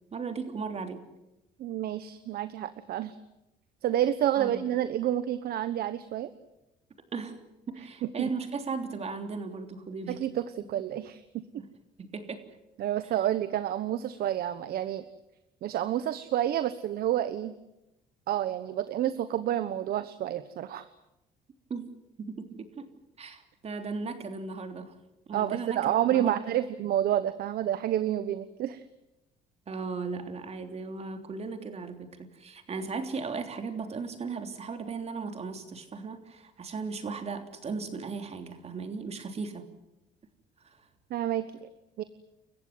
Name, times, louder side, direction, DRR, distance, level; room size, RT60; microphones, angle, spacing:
voice 1, 0.1-1.0 4.4-4.6 7.1-7.4 7.7-10.3 11.6-11.7 12.0-12.5 21.7-21.9 22.2-22.9 23.2-25.0 25.3-26.6 29.7-39.7 40.6-40.8, right 4 dB, 40° right, 6 dB, 3.3 m, -37 dB
voice 2, 1.6-3.1 3.8-6.3 8.2-8.3 10.1-11.2 11.5-11.6 12.8-15.0 15.6-17.5 18.3-20.9 25.3-28.8 41.1-41.7 42.0-42.1, right 11 dB, 65° right, 12 dB, 1.2 m, -29 dB
29.5 x 15.0 x 9.6 m, 0.93 s
cardioid pair, 110°, 17 cm